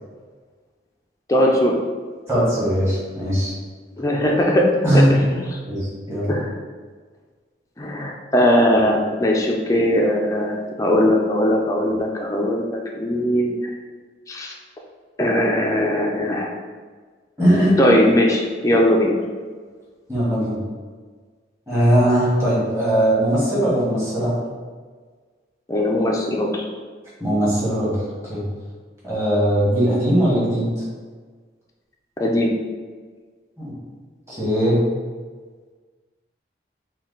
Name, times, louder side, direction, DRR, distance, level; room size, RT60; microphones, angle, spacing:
voice 1, 1.3-1.7 4.0-4.7 4.9-5.0 5.3-5.4 6.3-6.5 7.8-13.6 14.3-14.5 15.2-16.5 17.8-19.1 25.7-26.7 32.2-32.5, left 1 dB, 15° left, -1 dB, 0.4 m, -19 dB
voice 2, 2.3-3.5 4.8-5.2 5.7-6.3 17.4-17.8 20.1-20.6 21.7-24.3 27.2-27.9 28.3-28.4 29.0-30.7 33.6-33.7 34.3-34.8, equal, 15° right, -9 dB, 1.4 m, -19 dB
4.1 x 2.3 x 3.8 m, 1.5 s
head